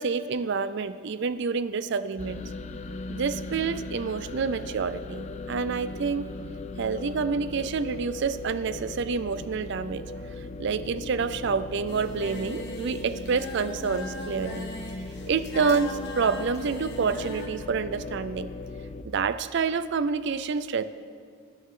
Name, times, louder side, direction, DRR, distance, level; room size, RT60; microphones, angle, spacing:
voice 1, 0.0-2.4 3.1-6.3 6.8-10.0 10.4-14.7 15.3-18.5 19.0-20.8, right 5 dB, 55° right, 13 dB, 0.4 m, -28 dB
sound 1, 2.2-19.0, left 2 dB, 30° left, 0.4 m, -38 dB
Singing, 11.9-17.5, left 1 dB, 50° left, 1.2 m, -40 dB
19.5 x 9.9 x 3.8 m, 2.2 s
head